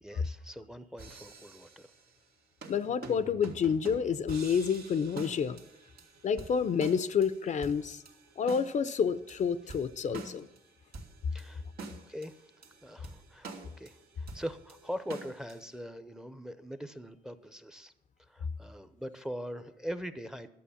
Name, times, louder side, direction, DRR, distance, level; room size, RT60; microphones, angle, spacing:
voice 1, 0.0-1.9 10.1-10.2 11.3-11.6 12.0-12.3 12.8-13.5 13.8-17.9 18.3-20.5, equal, 5° right, 12 dB, 0.7 m, -41 dB
sound 1, 1.0-2.2 2.6-15.8, right 3 dB, 80° right, 2.2 m, -48 dB
voice 2, 2.7-5.6 6.2-8.0 8.4-10.5, left 6 dB, 50° left, 13 dB, 0.6 m, -29 dB
11.5 x 7.6 x 7.1 m, 0.87 s
cardioid pair, 105°, 15 cm